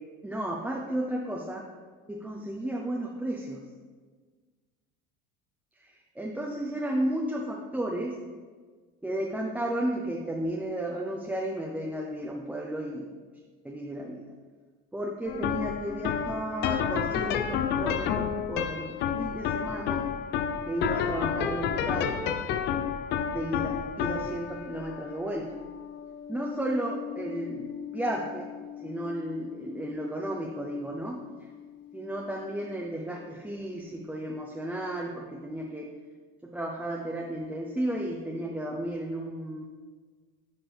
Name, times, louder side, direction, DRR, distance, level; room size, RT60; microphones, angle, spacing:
voice 1, 0.2-1.7 2.1-3.6 5.8-8.1 9.0-13.1 13.6-14.2 14.9-20.1 20.7-22.2 23.3-25.6 26.3-28.5 28.8-31.2 31.9-35.9 36.4-39.7, right 1 dB, 5° right, -2 dB, 0.7 m, -33 dB
sound 1, 15.3-32.5, left 8 dB, 55° left, 0.6 m, -32 dB
10.5 x 4.3 x 3.4 m, 1.5 s
supercardioid pair, 105°, 21 cm